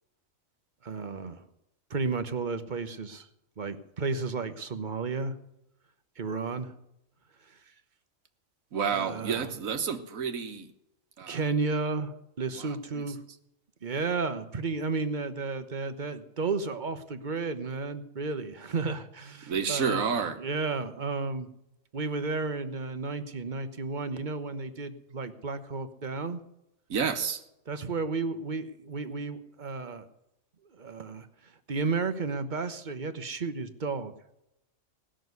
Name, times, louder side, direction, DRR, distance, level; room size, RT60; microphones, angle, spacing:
voice 1, 0.8-1.5 1.9-3.3 3.6-5.3 6.2-6.7 8.9-9.5 11.3-13.2 13.8-20.1 20.4-21.5 21.9-26.4 27.7-30.1 30.7-34.1, right 4 dB, 40° right, 11 dB, 1.0 m, -33 dB
voice 2, 8.7-10.7 11.2-11.4 12.5-13.1 19.5-20.4 26.9-27.4, right 6 dB, 80° right, 9 dB, 1.6 m, -30 dB
18.0 x 6.4 x 9.4 m, 0.84 s
omnidirectional pair, 1.4 m